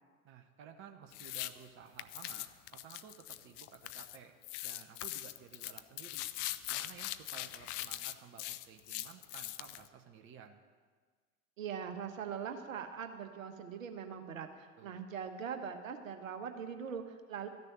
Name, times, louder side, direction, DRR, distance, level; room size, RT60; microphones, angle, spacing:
voice 1, 0.2-4.3 4.6-6.3 6.7-10.6 14.8-15.0, right 7 dB, 30° right, 5 dB, 1.0 m, -54 dB
sound 1, 1.1-1.5 2.0-4.2 4.4-9.9, left 15 dB, 30° left, 0.4 m, -41 dB
voice 2, 11.6-17.5, right 7 dB, 65° right, 7 dB, 1.3 m, -42 dB
13.5 x 6.7 x 9.7 m, 1.5 s
figure-of-eight pair, 80°, 42 cm